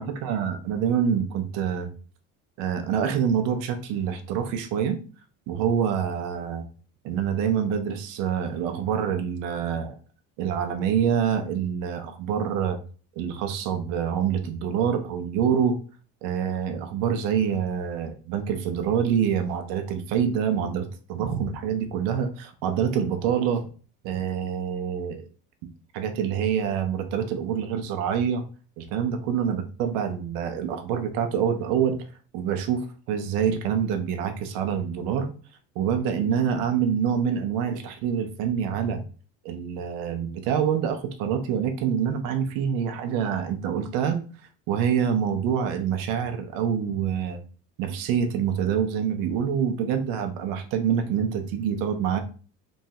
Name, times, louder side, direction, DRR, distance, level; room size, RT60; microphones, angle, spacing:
voice 1, 0.0-1.9 2.6-5.0 5.5-6.6 7.0-10.0 10.4-12.8 13.2-15.8 16.2-23.7 24.0-25.3 25.9-28.4 28.8-32.0 32.3-35.3 35.8-39.0 39.4-44.2 44.7-47.4 47.8-52.2, right 8 dB, 65° right, 7 dB, 0.5 m, -26 dB
3.1 x 2.3 x 2.7 m, 0.39 s
cardioid pair, 170°, 35 cm